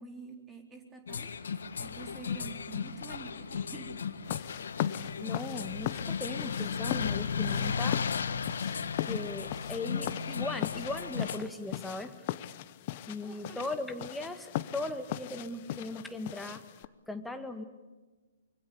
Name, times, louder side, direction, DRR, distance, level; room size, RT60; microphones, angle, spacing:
voice 1, 0.0-4.0 13.2-13.6, right 4 dB, 15° right, 4 dB, 3.9 m, -48 dB
sound 1, 1.1-11.4, left 6 dB, 65° left, 1.5 m, -35 dB
sound 2, 4.2-16.9, left 14 dB, 40° left, 1.0 m, -39 dB
voice 2, 5.2-8.0 9.1-12.2 13.1-16.6 17.1-17.6, left 2 dB, 5° left, 7 dB, 1.9 m, -38 dB
25.5 x 24.0 x 8.5 m, 1.2 s
figure-of-eight pair, 120°, 0 cm